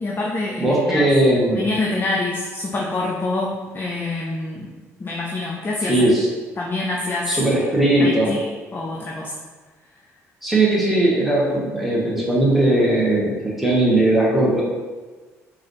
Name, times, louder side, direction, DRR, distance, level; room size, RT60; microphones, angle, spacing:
voice 1, 0.0-1.0 1.5-4.7 5.0-6.1 6.6-7.4 8.0-8.4 8.7-9.3, left 2 dB, 25° left, -3 dB, 0.5 m, -26 dB
voice 2, 0.6-1.6 5.8-6.3 7.3-8.3 10.4-13.3 13.6-14.6, right 1 dB, ahead, -5 dB, 1.2 m, -18 dB
4.0 x 2.5 x 3.0 m, 1.3 s
figure-of-eight pair, 50°, 8 cm